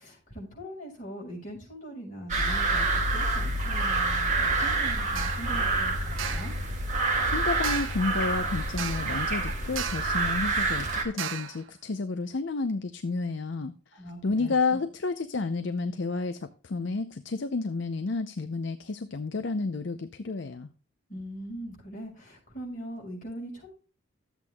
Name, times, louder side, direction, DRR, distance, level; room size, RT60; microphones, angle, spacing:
voice 1, 0.0-6.6 13.9-14.8 21.1-23.7, right 1 dB, 40° left, -3 dB, 5.5 m, -41 dB
sound 1, 2.3-11.0, right 2 dB, 35° right, 2.2 m, -27 dB
sound 2, 5.2-5.5 6.2-6.6 7.6-8.1 8.8-9.2 9.8-10.2 11.2-11.6, right 8 dB, 70° right, 0.9 m, -35 dB
voice 2, 7.3-13.7 14.2-20.7, left 3 dB, 60° left, 9 dB, 0.6 m, -31 dB
13.0 x 8.1 x 2.3 m, 0.39 s
head